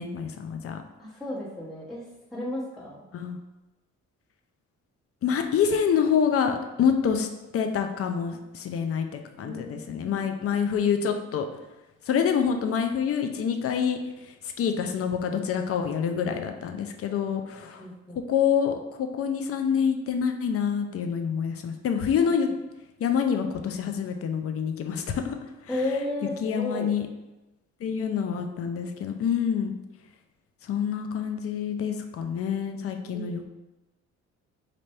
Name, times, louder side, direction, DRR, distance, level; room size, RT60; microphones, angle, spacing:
voice 1, 0.0-0.8 3.1-3.4 5.2-7.3 7.5-11.5 12.1-14.0 14.2-17.8 18.3-22.5 23.0-25.4 25.7-25.8 26.4-27.1 27.8-29.7 30.6-33.5, left 7 dB, 50° left, 6 dB, 0.5 m, -27 dB
voice 2, 1.0-2.0 2.3-3.1 9.4-10.3 17.8-18.2 22.2-22.3 25.7-26.9 33.0-33.3, left 1 dB, ahead, -9 dB, 1.2 m, -33 dB
3.3 x 2.5 x 4.3 m, 1.0 s
cardioid pair, 90°, 30 cm